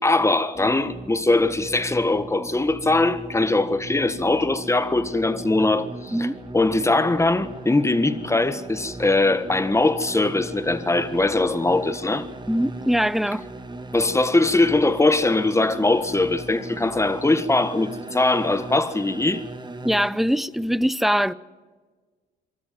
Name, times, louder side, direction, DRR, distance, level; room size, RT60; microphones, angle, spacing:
voice 1, 0.0-12.3 13.9-19.4, left 2 dB, 15° left, 1.5 m, -21 dB
sound 1, 0.5-20.1, right 2 dB, 20° right, 1.6 m, -38 dB
voice 2, 12.5-13.4 19.8-21.3, equal, ahead, 0.6 m, -22 dB
24.0 x 13.5 x 9.4 m
cardioid pair, 90°, 20 cm